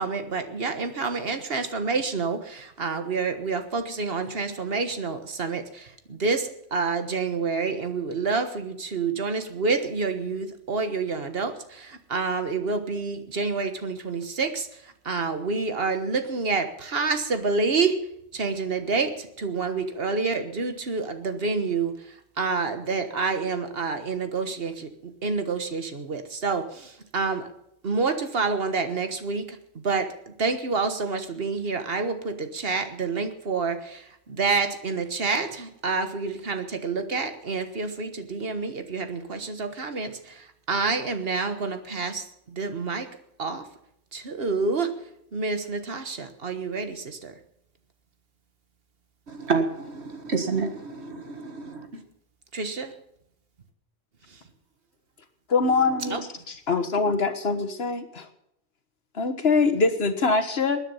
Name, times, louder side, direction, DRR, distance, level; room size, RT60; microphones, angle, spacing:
voice 1, 0.0-18.1 18.3-27.5 27.8-43.7 44.1-45.0 45.3-47.3 52.5-52.9 54.3-54.4 56.1-56.2, right 4 dB, 65° right, 9 dB, 1.6 m, -28 dB
voice 2, 49.3-52.0 55.6-56.1 57.0-57.1, right 4 dB, 80° right, 7 dB, 2.0 m, -30 dB
voice 3, 55.5-56.2 56.5-58.3 59.1-60.8, left 4 dB, 70° left, 9 dB, 1.7 m, -23 dB
20.5 x 10.0 x 5.6 m, 0.77 s
omnidirectional pair, 1.1 m